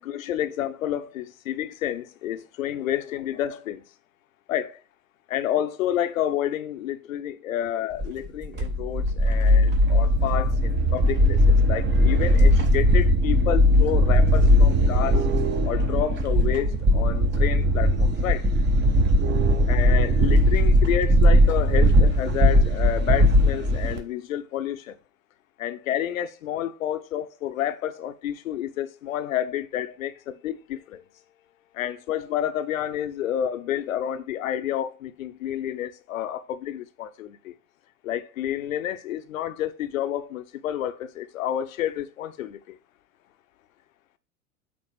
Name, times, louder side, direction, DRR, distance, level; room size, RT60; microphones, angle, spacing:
voice 1, 0.0-3.8 4.5-4.8 5.3-15.3 15.6-18.5 19.7-24.9 25.6-31.0 31.7-37.5 38.0-42.8, left 11 dB, 60° left, 0.9 m, -29 dB
sound 1, 8.0-24.0, equal, 25° right, 1.2 m, -19 dB
8.8 x 3.8 x 5.4 m
figure-of-eight pair, 85°, 46 cm